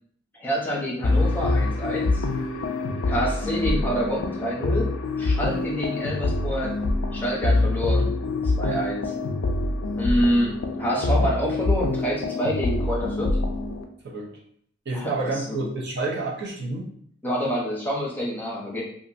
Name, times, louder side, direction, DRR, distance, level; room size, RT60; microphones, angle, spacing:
voice 1, 0.4-2.2 3.1-4.9 5.2-6.7 7.1-8.1 8.5-9.1 10.0-13.3 14.9-15.6 17.2-18.8, equal, 10° left, -5 dB, 0.8 m, -27 dB
sound 1, 1.0-13.8, left 2 dB, 90° left, 0.4 m, -25 dB
voice 2, 14.9-16.9, right 3 dB, 60° right, -2 dB, 0.7 m, -29 dB
2.9 x 2.4 x 2.5 m, 0.63 s
head